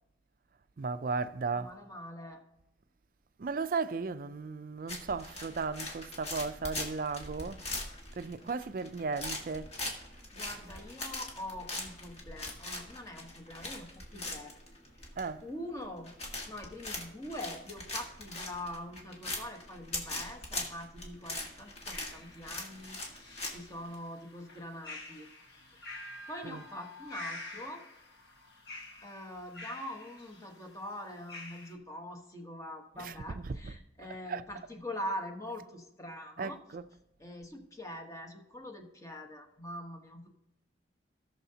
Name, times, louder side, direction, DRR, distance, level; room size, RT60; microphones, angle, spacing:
voice 1, 0.8-1.7 3.4-7.6 8.2-9.7 15.2-15.5 26.4-26.6 33.0-34.4 36.4-36.9, right 4 dB, 50° right, 0.4 m, -36 dB
voice 2, 1.5-2.4 10.3-14.6 14.9-15.1 15.4-16.1 16.5-25.3 25.7-27.8 29.0-36.6 37.2-40.3, left 1 dB, 20° left, 1.1 m, -43 dB
sound 1, 4.9-23.9, left 2 dB, 35° left, 1.9 m, -41 dB
sound 2, 21.3-31.7, left 2 dB, 65° left, 1.6 m, -48 dB
17.5 x 6.5 x 2.8 m
head